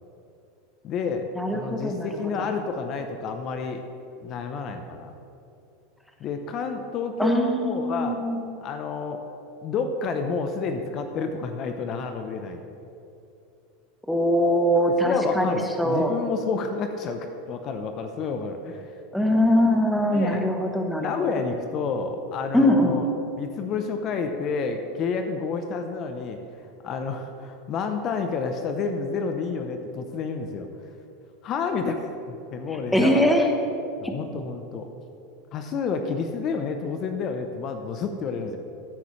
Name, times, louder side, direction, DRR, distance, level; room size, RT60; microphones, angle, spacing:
voice 1, 0.8-3.8 4.2-5.1 6.2-8.2 8.6-9.2 9.6-12.6 15.0-18.9 20.0-20.4 21.0-23.1 23.4-26.4 26.8-30.7 31.4-33.4 34.0-34.9 35.5-38.6, left 5 dB, 40° left, 6 dB, 0.7 m, -29 dB
voice 2, 1.4-2.1 2.4-2.5 7.2-8.7 14.1-16.1 19.1-21.1 22.5-23.0 32.9-33.5 34.0-34.1, equal, ahead, 2 dB, 1.1 m, -22 dB
14.5 x 7.9 x 3.2 m, 2.7 s
supercardioid pair, 120°, 0 cm